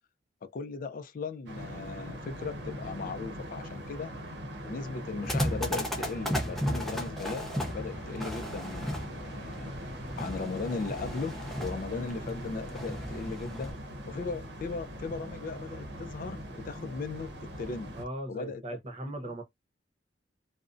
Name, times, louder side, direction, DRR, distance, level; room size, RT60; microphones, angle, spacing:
voice 1, 0.4-4.1 4.6-9.7 10.2-13.7 14.1-18.0 18.3-18.6 19.0-19.4, left 4 dB, 50° left, 0.4 m, -37 dB
sound 1, 1.5-18.0, equal, 70° right, 0.7 m, -41 dB
sound 2, 5.2-13.7, equal, ahead, 0.6 m, -35 dB
voice 2, 18.0-19.4, right 1 dB, 35° right, 0.7 m, -38 dB
2.4 x 2.0 x 2.4 m
head